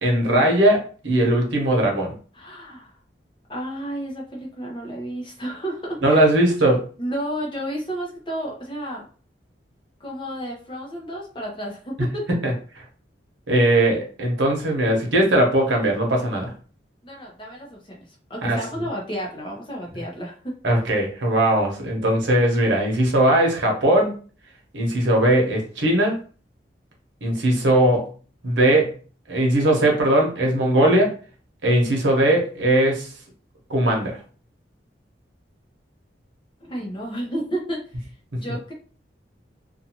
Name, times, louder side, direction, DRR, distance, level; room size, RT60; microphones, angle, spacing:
voice 1, 0.0-2.1 6.0-6.8 12.4-12.8 13.5-16.5 18.4-18.6 20.6-24.1 24.7-26.2 27.2-28.1 28.4-28.9 29.3-31.1 31.6-33.1 33.7-34.2, right 1 dB, 85° right, 0 dB, 0.9 m, -19 dB
voice 2, 2.3-2.9 3.5-6.3 7.0-9.0 10.0-12.3 17.0-18.0 18.3-20.5 36.6-37.8 38.4-38.7, right 1 dB, 25° left, -2 dB, 0.7 m, -31 dB
2.6 x 2.4 x 2.8 m, 0.40 s
head